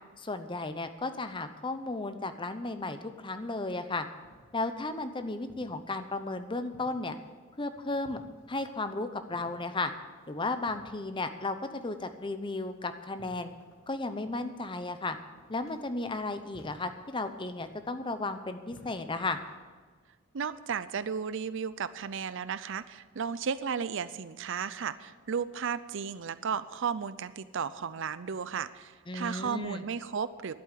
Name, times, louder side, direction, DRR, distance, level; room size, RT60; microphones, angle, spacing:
voice 1, 0.2-4.1 4.5-7.2 7.6-8.2 8.5-9.9 10.3-13.5 13.9-15.2 15.5-19.4 29.1-29.8, left 2 dB, 25° left, 9 dB, 0.8 m, -34 dB
sound 1, 3.9-19.6, equal, 75° left, 2.2 m, -60 dB
voice 2, 20.3-30.5, right 6 dB, 60° right, 15 dB, 0.5 m, -34 dB
11.5 x 8.5 x 9.3 m, 1.4 s
head